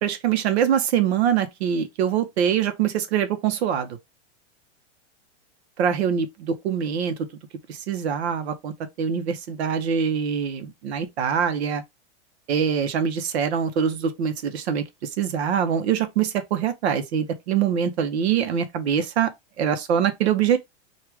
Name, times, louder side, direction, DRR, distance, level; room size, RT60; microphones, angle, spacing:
voice 1, 0.0-4.0 5.8-7.2 7.7-11.8 12.5-20.6, right 8 dB, 65° right, 0.8 m, -24 dB
4.6 x 2.4 x 3.4 m
supercardioid pair, 170°, 35 cm